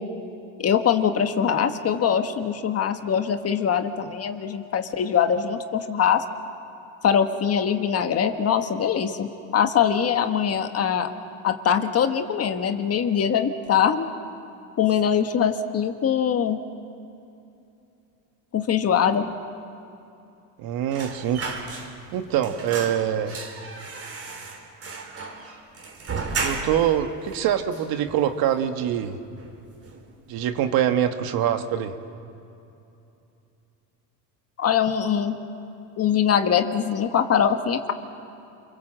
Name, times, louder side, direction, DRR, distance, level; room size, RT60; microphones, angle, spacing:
voice 1, 0.6-6.2 7.0-11.1 11.4-14.1 14.8-16.6 18.5-19.3 34.6-35.4 36.0-37.9, left 8 dB, 35° left, 7 dB, 1.5 m, -22 dB
voice 2, 20.6-21.5 22.1-23.4 26.4-29.2 30.3-31.9, right 10 dB, 60° right, 7 dB, 1.7 m, -24 dB
sound 1, 20.9-22.2 22.4-27.0 27.3-27.4 27.7-28.5 28.9-29.1 29.4-30.1 30.4-30.5, right 4 dB, 35° right, 3.5 m, -34 dB
29.0 x 22.5 x 7.7 m, 2.8 s
supercardioid pair, 120°, 41 cm